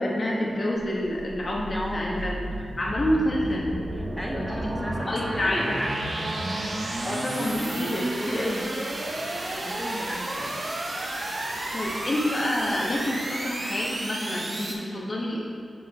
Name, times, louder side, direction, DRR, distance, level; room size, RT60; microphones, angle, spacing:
voice 1, 0.0-2.4 2.8-3.7 4.3-4.4 4.8-5.7 7.0-8.7 11.5-15.4, left 1 dB, 35° left, -3 dB, 1.4 m, -28 dB
sound 1, 0.7-14.7, right 1 dB, 45° right, 1.0 m, -32 dB
voice 2, 1.7-2.7 3.9-6.1 9.6-10.6, equal, ahead, 0 dB, 0.7 m, -35 dB
sound 2, 4.6-7.2 7.5-7.6, right 2 dB, 65° right, 0.7 m, -37 dB
7.6 x 4.8 x 5.3 m, 2.5 s
wide cardioid pair, 140°, 0 cm